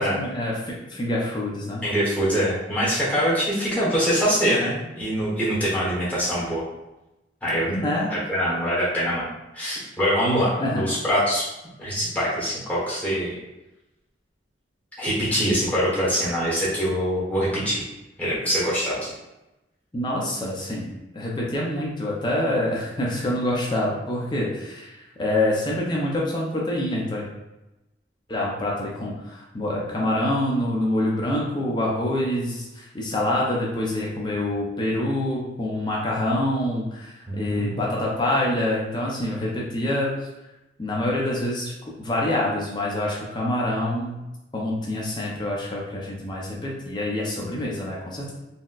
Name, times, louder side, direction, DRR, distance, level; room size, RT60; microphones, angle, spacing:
voice 1, 0.0-1.8 7.7-8.1 10.6-10.8 19.9-27.3 28.3-40.2 40.8-41.7 42.0-44.2 44.5-48.3, left 1 dB, 25° left, -3 dB, 0.5 m, -26 dB
voice 2, 1.8-6.6 7.4-11.5 11.8-13.4 15.0-17.8 18.2-19.1 37.3-37.8, equal, 10° left, -8 dB, 1.0 m, -24 dB
4.1 x 2.1 x 2.3 m, 0.97 s
head